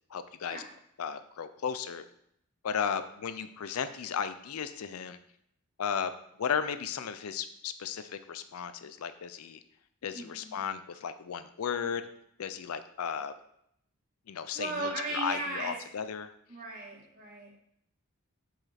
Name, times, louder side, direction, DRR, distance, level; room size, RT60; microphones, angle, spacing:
voice 1, 0.1-0.6 1.0-2.0 2.6-5.2 5.8-6.1 6.4-9.6 10.0-12.1 12.4-13.3 14.3-16.3, left 7 dB, 75° left, 11 dB, 0.5 m, -35 dB
voice 2, 10.1-10.5 14.5-15.7 16.5-17.5, right 2 dB, 40° right, -2 dB, 1.7 m, -36 dB
6.4 x 4.9 x 4.2 m, 0.73 s
head